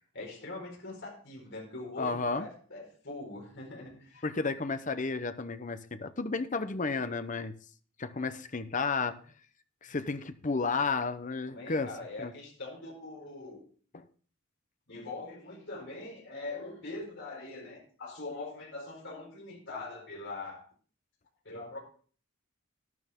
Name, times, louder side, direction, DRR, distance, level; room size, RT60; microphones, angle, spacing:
voice 1, 0.1-4.3 11.5-13.6 14.9-20.7 21.4-21.8, left 2 dB, 60° left, 4.6 m, -42 dB
voice 2, 2.0-2.5 4.2-7.5 8.0-9.2 9.8-11.9 12.2-12.3 13.9-14.1, left 4 dB, 35° left, 0.8 m, -32 dB
12.0 x 11.5 x 3.7 m
head